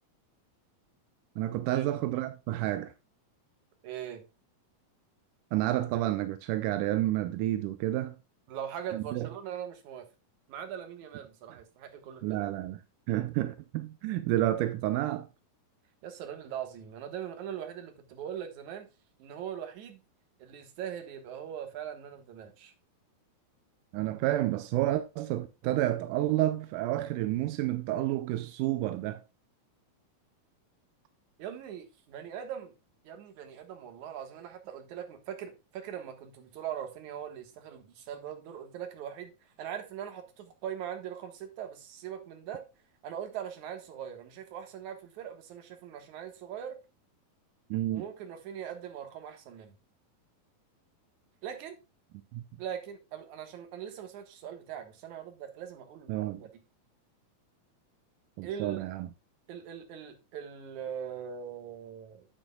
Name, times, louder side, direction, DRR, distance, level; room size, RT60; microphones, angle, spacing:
voice 1, 1.4-2.9 5.5-8.2 8.9-9.3 12.2-12.8 13.1-15.3 23.9-29.2 47.7-48.0 52.3-52.4 56.1-56.4 58.4-59.1, right 14 dB, 80° right, 1.9 m, -30 dB
voice 2, 3.8-4.2 8.5-10.1 10.5-12.5 16.0-18.9 19.2-20.0 20.4-22.7 31.4-32.7 33.0-39.3 39.6-42.6 43.0-46.8 47.9-49.7 51.4-51.8 52.6-56.5 58.4-58.8 59.5-62.3, right 9 dB, 60° right, 2.6 m, -41 dB
9.8 x 8.4 x 2.3 m
omnidirectional pair, 4.1 m